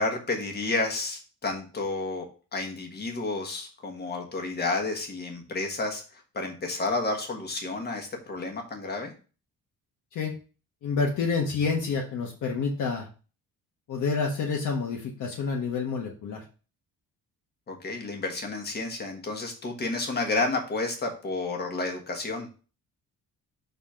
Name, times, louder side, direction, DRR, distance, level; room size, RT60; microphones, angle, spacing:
voice 1, 0.0-9.1 17.7-22.5, left 3 dB, 25° left, 2 dB, 1.4 m, -31 dB
voice 2, 10.8-13.1 13.9-16.4, left 5 dB, 60° left, 0 dB, 1.2 m, -28 dB
5.8 x 4.1 x 5.0 m, 0.35 s
cardioid pair, 180°, 35 cm